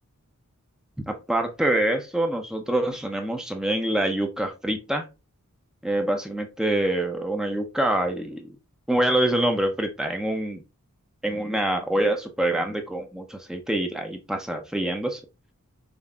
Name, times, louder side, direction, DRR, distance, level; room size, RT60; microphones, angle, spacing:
voice 1, 1.1-5.1 5.8-8.5 8.9-10.6 11.2-15.2, right 1 dB, 5° right, 4 dB, 0.3 m, -25 dB
5.1 x 2.3 x 2.2 m, 0.28 s
head